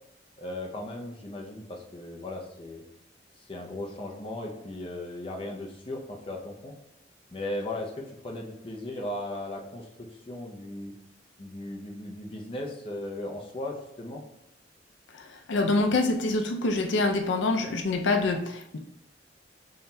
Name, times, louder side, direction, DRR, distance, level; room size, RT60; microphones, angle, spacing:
voice 1, 0.4-2.8 3.4-6.7 7.3-10.9 11.4-14.2, left 1 dB, 30° left, 0 dB, 0.6 m, -37 dB
voice 2, 15.1-18.8, left 2 dB, 80° left, 4 dB, 0.5 m, -26 dB
5.6 x 4.2 x 2.3 m, 0.83 s
head